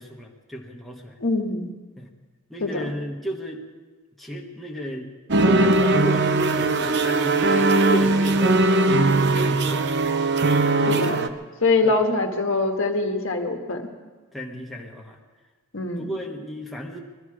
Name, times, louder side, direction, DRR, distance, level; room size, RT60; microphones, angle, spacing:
voice 1, 0.0-1.2 2.0-2.1 2.5-3.6 4.2-5.1 5.5-9.9 10.8-11.4 11.8-12.0 14.3-15.2 16.0-17.0, equal, ahead, -2 dB, 1.3 m, -33 dB
voice 2, 1.2-1.7 2.6-2.9 10.9-11.2 11.6-13.9 15.7-16.1, left 3 dB, 60° left, 3 dB, 1.6 m, -23 dB
sound 1, 5.3-11.3, right 2 dB, 50° right, 0.7 m, -20 dB
21.0 x 13.0 x 4.9 m, 1.3 s
head